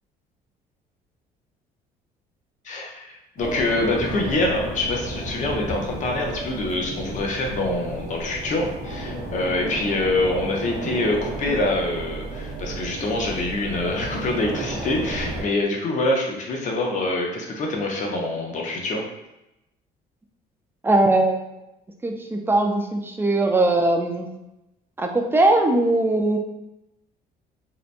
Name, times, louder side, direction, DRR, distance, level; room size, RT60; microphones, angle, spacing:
voice 1, 2.6-19.0, left 2 dB, 45° left, 0 dB, 0.6 m, -25 dB
sound 1, 3.4-15.4, right 1 dB, 80° right, 0.7 m, -33 dB
voice 2, 20.8-21.4 22.0-24.3 25.0-26.4, right 2 dB, 15° right, 2 dB, 0.3 m, -20 dB
2.8 x 2.1 x 2.5 m, 0.90 s
cardioid pair, 110°, 17 cm